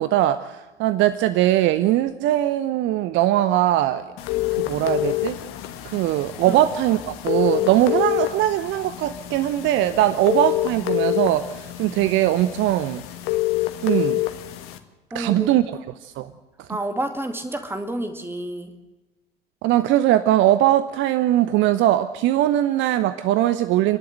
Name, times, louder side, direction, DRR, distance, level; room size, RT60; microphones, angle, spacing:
voice 1, 0.0-4.0 4.6-5.4 5.8-13.0 13.8-14.2 15.1-15.7 16.0-16.3 19.6-24.0, right 13 dB, 40° right, 13 dB, 0.8 m, -20 dB
sound 1, 4.2-14.8, left 16 dB, 50° left, 1.7 m, -27 dB
voice 2, 15.1-15.5 16.7-18.7, right 1 dB, 10° right, 6 dB, 2.2 m, -29 dB
29.5 x 11.5 x 8.0 m, 1.1 s
figure-of-eight pair, 70°, 29 cm